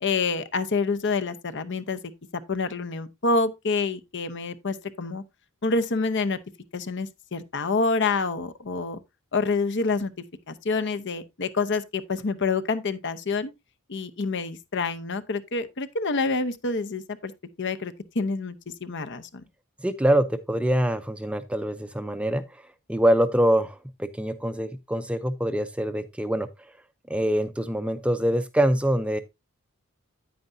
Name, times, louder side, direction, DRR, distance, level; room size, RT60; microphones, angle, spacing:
voice 1, 0.0-2.0 2.3-5.2 5.6-6.4 6.7-9.0 9.3-10.1 10.5-13.5 13.9-17.3 17.6-18.6 18.8-19.4, left 4 dB, 55° left, 0.8 m, -27 dB
voice 2, 19.8-22.4 22.9-26.5 27.1-29.2, right 1 dB, 5° right, 0.5 m, -24 dB
9.3 x 9.3 x 2.6 m
head